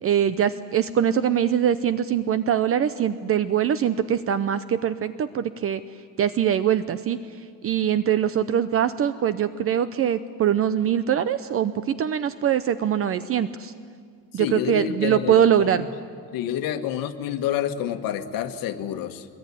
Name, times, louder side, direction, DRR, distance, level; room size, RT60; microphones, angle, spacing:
voice 1, 0.0-5.8 6.2-7.2 7.6-13.7 14.3-15.8, right 9 dB, 35° right, 14 dB, 0.7 m, -23 dB
voice 2, 14.3-15.7 16.3-19.3, left 10 dB, 65° left, 7 dB, 1.6 m, -28 dB
22.5 x 21.0 x 9.9 m, 2.1 s
cardioid pair, 160°, 37 cm